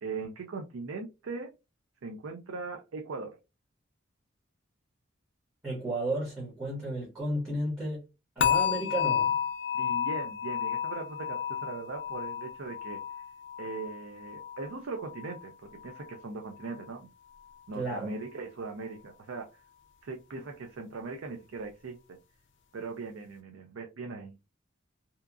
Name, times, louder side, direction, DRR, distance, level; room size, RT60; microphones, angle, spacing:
voice 1, 0.0-1.5 2.0-3.4 9.7-13.0 13.6-15.5 15.8-17.1 17.7-19.5 20.0-22.0 22.7-24.4, right 4 dB, 75° right, 0.5 m, -39 dB
voice 2, 5.6-8.0 8.4-9.4 17.7-18.1, right 1 dB, 15° right, 1.0 m, -33 dB
sound 1, 8.4-15.5 15.8-16.2 16.7-16.8, left 8 dB, 60° left, 0.4 m, -32 dB
2.8 x 2.3 x 2.4 m
head